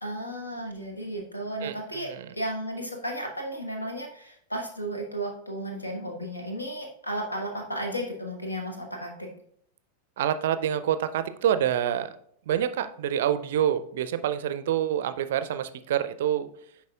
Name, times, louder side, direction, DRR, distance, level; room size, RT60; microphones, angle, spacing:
voice 1, 0.0-9.3, right 1 dB, 80° left, 2 dB, 1.2 m, -34 dB
voice 2, 10.2-12.1 12.5-16.5, right 10 dB, 55° right, 12 dB, 0.4 m, -27 dB
10.5 x 4.1 x 2.3 m, 0.68 s
figure-of-eight pair, 90°, 0 cm